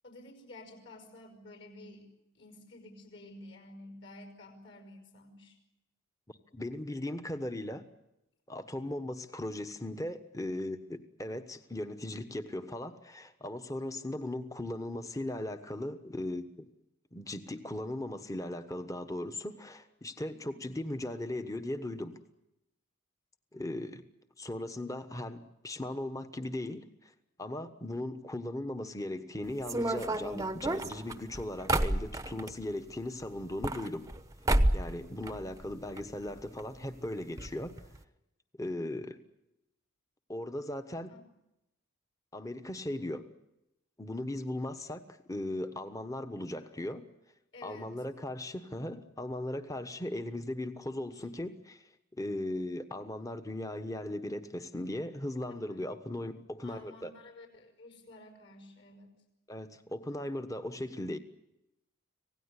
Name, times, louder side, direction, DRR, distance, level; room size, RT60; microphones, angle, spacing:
voice 1, 0.0-2.1 2.3-5.6 20.3-20.6 23.5-23.9 41.1-41.2 47.5-48.0 55.7-55.8 56.6-59.2, left 2 dB, 55° left, 6 dB, 5.5 m, -51 dB
voice 2, 6.5-7.8 8.5-16.7 17.1-22.2 23.5-24.0 24.4-27.1 27.4-34.1 34.7-37.7 38.6-39.2 40.3-41.1 42.3-43.3 44.0-47.1 47.6-51.9 52.2-57.1 59.5-61.2, left 1 dB, 15° left, 10 dB, 1.2 m, -38 dB
sound 1, 29.6-32.6 33.4-34.2 34.5-34.9 35.2-36.0 36.3-36.4 36.6-36.7 37.4-37.5 37.8-38.0, right 1 dB, 15° right, 0.9 m, -30 dB
26.5 x 17.5 x 10.0 m, 0.89 s
head